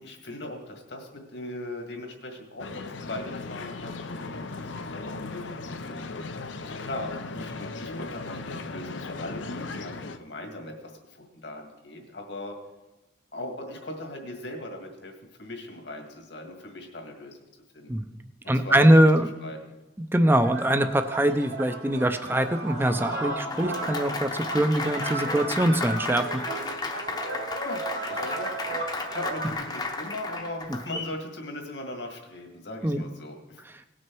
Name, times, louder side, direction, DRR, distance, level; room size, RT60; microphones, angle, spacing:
voice 1, 0.0-10.7 11.0-12.6 13.3-17.4 17.8-17.9 18.4-19.8 27.6-28.8 29.1-33.6, left 1 dB, 70° left, 2 dB, 1.9 m, -39 dB
sound 1, 2.6-10.2, left 3 dB, 90° left, 0.7 m, -37 dB
voice 2, 18.5-19.3 20.0-26.2 32.8-33.0, right 1 dB, 10° right, 8 dB, 0.5 m, -22 dB
sound 2, 20.4-29.5, right 3 dB, 70° right, 1.9 m, -35 dB
Applause, 22.4-31.2, left 3 dB, 20° left, 0.8 m, -34 dB
18.0 x 6.2 x 4.6 m, 1.0 s
head